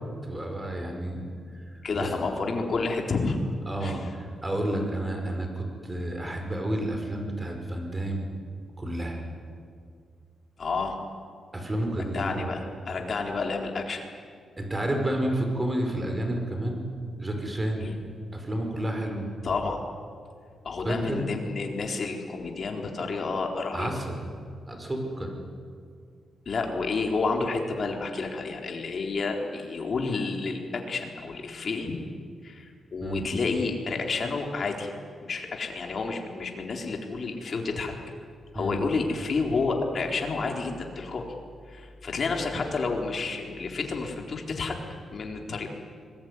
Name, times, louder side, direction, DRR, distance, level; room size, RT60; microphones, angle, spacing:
voice 1, 0.2-1.2 1.5-2.1 3.7-8.3 8.8-9.2 11.5-12.5 14.6-16.8 17.2-17.9 18.3-19.3 20.8-21.3 23.7-24.2 24.7-25.3 33.0-33.3 38.5-38.8, right 1 dB, 15° right, 3 dB, 5.3 m, -30 dB
voice 2, 1.8-3.4 3.8-4.1 10.6-11.0 12.1-14.0 17.8-18.0 19.4-19.8 20.6-23.9 26.5-32.0 32.4-34.9 35.2-37.9 38.5-41.3 41.7-44.8 45.1-45.7, left 4 dB, 45° left, 2 dB, 4.0 m, -30 dB
25.5 x 21.0 x 9.7 m, 2.1 s
cardioid pair, 120°, 0 cm